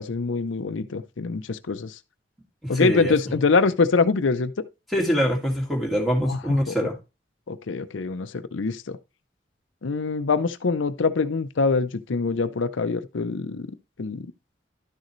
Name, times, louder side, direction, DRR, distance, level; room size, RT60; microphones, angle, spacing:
voice 1, 0.0-2.0 2.7-4.5 6.2-6.9 7.5-9.0 9.8-13.7 14.0-14.3, left 4 dB, 90° left, 0.6 m, -24 dB
voice 2, 2.6-3.1 4.9-7.0, equal, ahead, 2.0 m, -24 dB
11.5 x 6.5 x 3.1 m
head